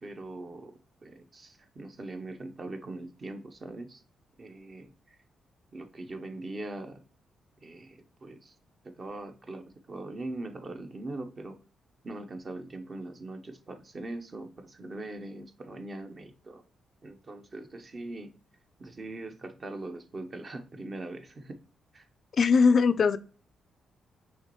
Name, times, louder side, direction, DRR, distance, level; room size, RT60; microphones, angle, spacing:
voice 1, 0.0-4.0 4.4-5.2 5.7-7.0 7.6-8.5 8.8-11.6 12.0-16.6 17.0-18.3 18.8-21.6 21.9-22.1, right 2 dB, 40° right, 0.7 m, -41 dB
voice 2, 22.4-23.2, left 5 dB, 55° left, 0.4 m, -20 dB
5.5 x 3.1 x 3.0 m
cardioid pair, 75°, 0 cm